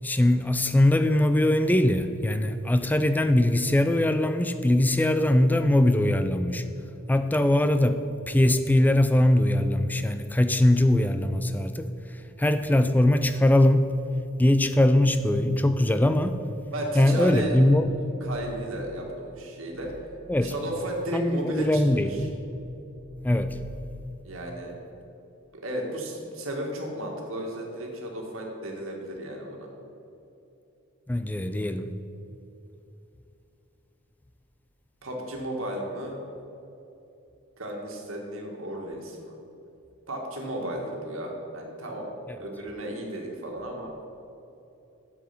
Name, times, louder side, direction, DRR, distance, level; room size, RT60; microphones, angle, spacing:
voice 1, 0.0-6.6 7.1-8.0 8.3-13.9 14.4-16.4 16.9-17.9 20.3-20.5 21.1-23.6 31.1-31.9 42.3-42.4, left 1 dB, 10° left, 10 dB, 0.3 m, -22 dB
voice 2, 16.7-17.5 17.8-19.9 20.4-22.2 24.2-24.7 25.5-29.7 35.0-36.2 37.6-39.3 40.1-43.9, right 1 dB, 70° right, 0 dB, 1.8 m, -34 dB
8.8 x 7.5 x 5.8 m, 2.9 s
head